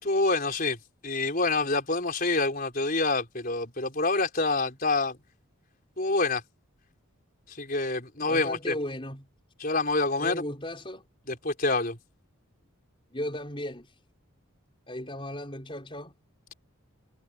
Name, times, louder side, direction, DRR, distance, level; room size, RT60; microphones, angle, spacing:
voice 1, 0.0-0.8 1.0-5.2 6.0-6.4 7.5-8.7 9.6-10.4 11.3-12.0, left 3 dB, 40° left, 4.8 m, -27 dB
voice 2, 8.2-9.3 10.2-11.0 13.1-14.0 14.9-16.1, left 1 dB, 25° left, 4.7 m, -36 dB
head